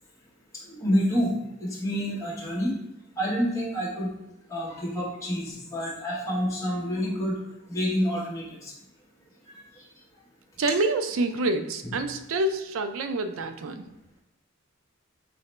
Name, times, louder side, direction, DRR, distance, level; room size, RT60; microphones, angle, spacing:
voice 1, 0.5-1.3 1.6-2.7 3.2-4.1 4.5-7.4 7.7-8.7 9.5-9.8 11.8-11.9, equal, 15° left, -6 dB, 1.0 m, -28 dB
voice 2, 10.6-13.8, right 2 dB, 75° right, 8 dB, 0.4 m, -27 dB
4.1 x 2.8 x 3.2 m, 0.89 s
head